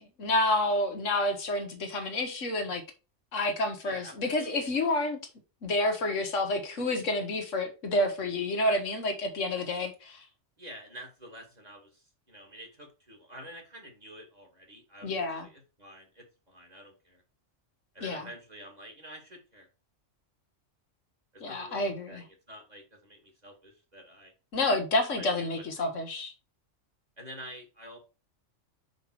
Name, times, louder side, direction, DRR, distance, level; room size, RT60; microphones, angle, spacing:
voice 1, 0.0-2.8 3.3-5.2 5.6-10.2 15.0-15.5 18.0-18.3 21.4-22.2 24.5-26.3, left 2 dB, 80° left, 1.6 m, -29 dB
voice 2, 3.8-4.6 10.6-17.2 17.9-19.7 21.3-24.3 25.1-25.9 27.2-28.0, equal, 35° right, 2.3 m, -48 dB
5.5 x 5.3 x 4.5 m
omnidirectional pair, 1.3 m